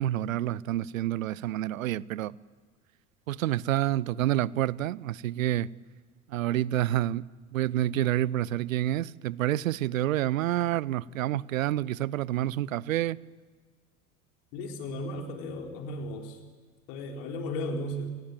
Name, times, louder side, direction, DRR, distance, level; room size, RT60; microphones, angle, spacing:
voice 1, 0.0-2.3 3.3-5.7 6.3-7.2 7.5-13.2, right 13 dB, 70° right, 0.7 m, -28 dB
voice 2, 14.5-16.4 16.9-18.1, left 1 dB, 55° left, 4.1 m, -35 dB
29.0 x 18.5 x 9.2 m
figure-of-eight pair, 70°, 42 cm